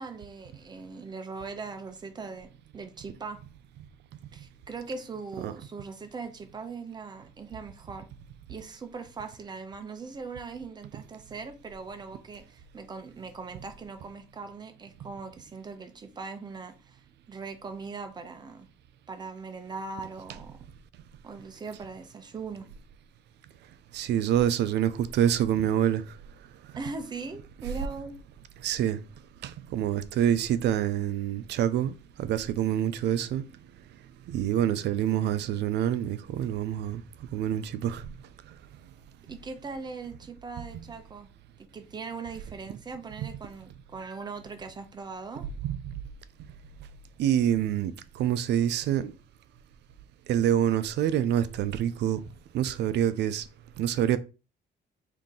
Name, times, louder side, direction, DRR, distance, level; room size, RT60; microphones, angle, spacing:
voice 1, 0.0-3.4 4.3-8.1 8.5-17.0 17.3-18.7 19.1-20.6 21.2-22.7 26.7-28.2 39.3-41.3 41.6-45.5, right 4 dB, 20° right, 0.6 m, -40 dB
voice 2, 23.9-26.1 28.6-29.0 29.4-33.4 34.3-37.0 37.3-38.1 43.2-43.3 45.6-45.8 47.2-49.1 50.3-52.2 52.5-53.5 53.8-54.2, right 10 dB, 65° right, 0.4 m, -26 dB
3.7 x 2.7 x 3.7 m
cardioid pair, 140°, 19 cm